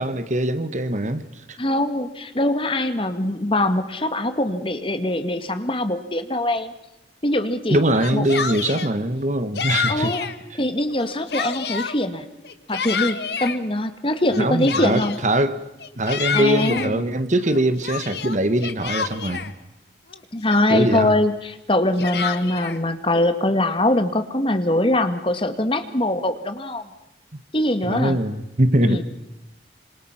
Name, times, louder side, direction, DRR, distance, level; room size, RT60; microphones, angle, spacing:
voice 1, 0.0-1.6 7.7-10.1 14.4-15.7 16.0-19.5 20.7-21.2 27.8-29.0, right 1 dB, 45° right, 11 dB, 1.4 m, -22 dB
voice 2, 1.6-6.7 7.2-7.8 8.1-8.2 9.9-10.3 10.6-12.2 12.7-15.2 16.3-17.0 20.3-26.8 27.5-28.2 28.8-29.0, left 1 dB, 30° left, 9 dB, 1.9 m, -22 dB
Yell, 7.9-8.9 9.6-10.4 10.9-12.0 12.4-13.6 14.3-15.3 15.8-16.9 17.4-19.5 20.1-20.2 20.5-21.0 21.7-22.8, left 6 dB, 70° left, 1.7 m, -28 dB
28.0 x 26.5 x 5.9 m, 0.95 s
head